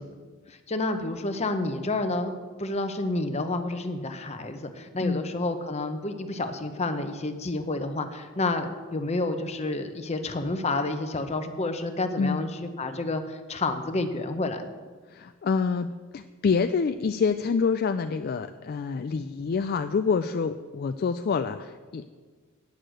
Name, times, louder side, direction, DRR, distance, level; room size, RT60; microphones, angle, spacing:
voice 1, 0.7-2.3 2.6-12.5 12.8-14.6, left 2 dB, 30° left, 7 dB, 0.8 m, -29 dB
voice 2, 15.1-22.1, left 5 dB, 45° left, 9 dB, 0.3 m, -27 dB
9.6 x 6.6 x 7.6 m, 1.5 s
head